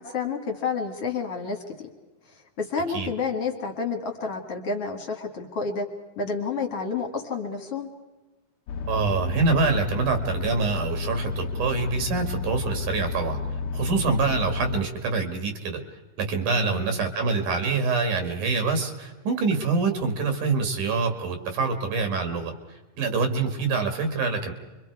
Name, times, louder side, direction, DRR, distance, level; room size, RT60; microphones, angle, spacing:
voice 1, 0.0-1.6 2.6-5.9 6.2-7.9 16.5-16.9, left 5 dB, 50° left, 3 dB, 2.5 m, -30 dB
sound 1, 8.7-14.8, left 4 dB, 65° left, 1.8 m, -31 dB
voice 2, 8.9-13.4 13.7-15.8 16.2-22.5 23.0-24.5, right 4 dB, 70° right, 5 dB, 3.6 m, -25 dB
29.0 x 24.5 x 4.8 m, 1.2 s
omnidirectional pair, 3.8 m